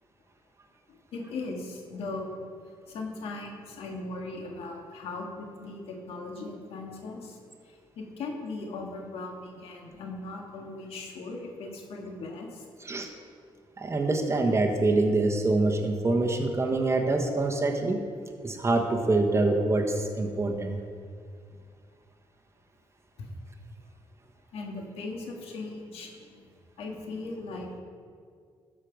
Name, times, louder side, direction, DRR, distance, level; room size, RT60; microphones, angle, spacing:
voice 1, 0.9-2.4 2.9-7.4 7.6-12.6 23.2-23.3 24.5-26.5 26.8-27.8, left 3 dB, 85° left, 1 dB, 1.8 m, -38 dB
voice 2, 13.8-18.0 18.4-20.8, right 2 dB, 30° right, 2 dB, 1.3 m, -25 dB
13.0 x 6.3 x 5.2 m, 2.1 s
cardioid pair, 70°, 10 cm